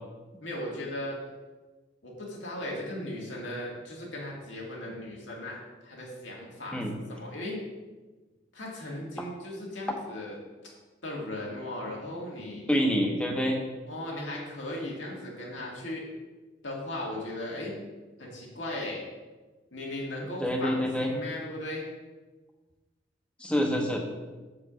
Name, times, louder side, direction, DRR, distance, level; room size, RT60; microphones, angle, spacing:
voice 1, 0.4-1.2 2.0-5.6 5.8-6.8 7.1-7.6 8.5-10.4 11.0-12.7 13.9-16.1 16.6-17.7 18.2-19.0 19.7-21.9, left 1 dB, 85° left, -2 dB, 1.9 m, -37 dB
voice 2, 12.7-13.6 20.4-21.1 23.4-24.0, equal, 5° left, 2 dB, 0.8 m, -26 dB
7.0 x 4.8 x 4.9 m, 1.3 s
head